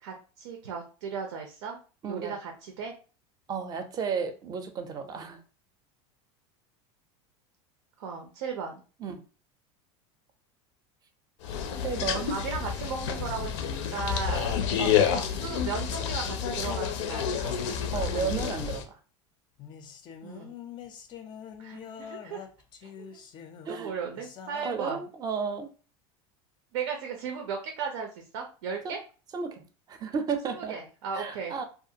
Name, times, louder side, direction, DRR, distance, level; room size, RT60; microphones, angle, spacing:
voice 1, 0.0-1.8 2.1-2.9 8.0-8.8 12.2-14.5 15.1-17.6 20.2-20.5 21.6-22.5 22.8-23.1 23.7-25.0 26.7-29.0 30.5-31.5, right 5 dB, 90° right, 3 dB, 0.6 m, -36 dB
voice 2, 2.0-2.3 3.5-5.4 9.0-9.2 11.8-12.3 14.8-15.0 17.9-19.0 23.6-23.9 24.6-25.7 28.8-28.9 29.3-30.8 31.2-31.7, right 6 dB, 25° right, 7 dB, 0.5 m, -33 dB
sound 1, 11.4-18.8, left 8 dB, 85° left, 0.5 m, -29 dB
sound 2, 19.6-24.7, left 7 dB, 30° left, 0.4 m, -45 dB
2.4 x 2.4 x 2.7 m, 0.36 s
supercardioid pair, 135°, 15 cm